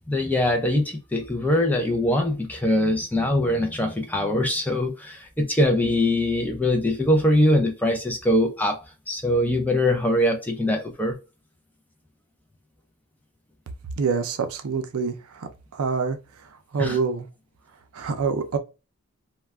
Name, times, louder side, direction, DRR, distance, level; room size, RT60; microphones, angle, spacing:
voice 1, 0.1-8.8 9.1-11.1 16.8-17.0, left 1 dB, 5° left, 0.4 m, -22 dB
voice 2, 14.0-17.3 17.9-18.6, right 5 dB, 80° right, 0.5 m, -27 dB
2.3 x 2.1 x 3.3 m
head